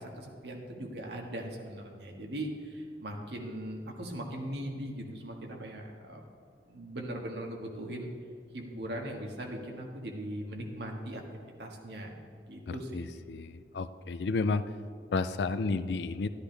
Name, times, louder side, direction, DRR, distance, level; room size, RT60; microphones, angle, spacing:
voice 1, 0.0-6.2 6.7-8.1 8.5-11.2 11.6-12.1 12.5-13.2, right 1 dB, 70° right, 1 dB, 1.6 m, -39 dB
voice 2, 12.7-14.6 15.1-16.3, left 3 dB, 75° left, 13 dB, 0.4 m, -32 dB
12.0 x 11.5 x 3.3 m, 2.3 s
head